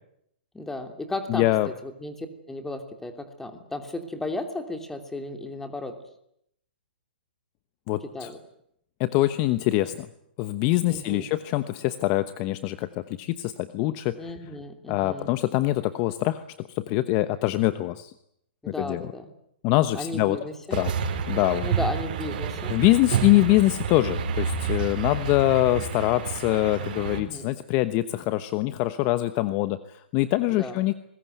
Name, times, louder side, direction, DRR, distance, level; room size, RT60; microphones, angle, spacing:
voice 1, 0.5-1.5 1.8-5.9 8.1-8.4 10.9-11.3 14.2-15.3 18.6-19.3 19.9-20.8 21.6-22.7 27.1-27.5 30.6-30.8, left 2 dB, 5° left, 6 dB, 3.1 m, -34 dB
voice 2, 1.3-1.7 7.9-8.3 9.0-10.1 10.4-14.3 14.9-18.1 18.7-19.0 19.6-20.4 20.7-21.0 21.3-21.7 22.7-30.9, left 17 dB, 35° left, 12 dB, 1.1 m, -24 dB
sound 1, 20.7-27.2, right 6 dB, 50° right, 5.1 m, -29 dB
25.0 x 21.0 x 9.4 m, 0.74 s
hypercardioid pair, 145°, 6 cm